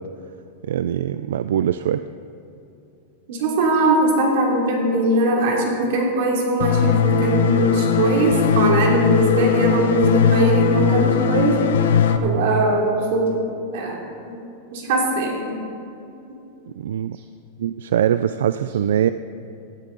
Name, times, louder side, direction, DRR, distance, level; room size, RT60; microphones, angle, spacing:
voice 1, 0.6-2.0 16.8-17.2 17.6-19.1, right 10 dB, 85° right, 12 dB, 0.3 m, -22 dB
voice 2, 3.3-11.6 12.2-13.4 13.7-14.4 14.7-15.6, right 1 dB, 60° right, -1 dB, 2.9 m, -20 dB
sound 1, 6.6-12.2, left 7 dB, 75° left, 0.8 m, -19 dB
15.5 x 11.5 x 4.0 m, 2.7 s
supercardioid pair, 170°, 0 cm